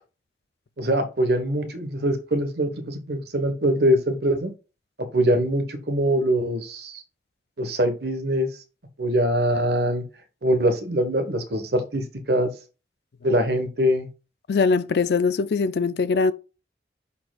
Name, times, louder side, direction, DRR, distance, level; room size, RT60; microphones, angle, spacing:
voice 1, 0.8-4.5 5.1-7.0 7.6-8.5 9.0-10.0 10.4-12.5 13.2-14.1, equal, 65° right, 1.2 m, -23 dB
voice 2, 14.5-16.3, left 4 dB, 65° left, 0.4 m, -21 dB
11.0 x 4.4 x 2.4 m
head